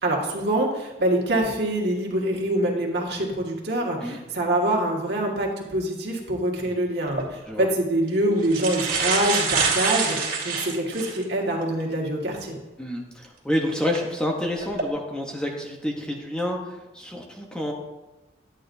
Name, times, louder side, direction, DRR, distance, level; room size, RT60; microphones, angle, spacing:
voice 1, 0.0-12.6, right 1 dB, 70° right, -1 dB, 1.8 m, -25 dB
sound 1, 7.1-7.3 8.1-8.2 8.4-11.2 11.8-11.9 13.7-14.0 14.6-14.8, right 5 dB, 55° right, 2.2 m, -25 dB
voice 2, 12.8-17.7, left 1 dB, 5° left, 0 dB, 0.9 m, -28 dB
11.0 x 8.8 x 2.7 m, 1.0 s
head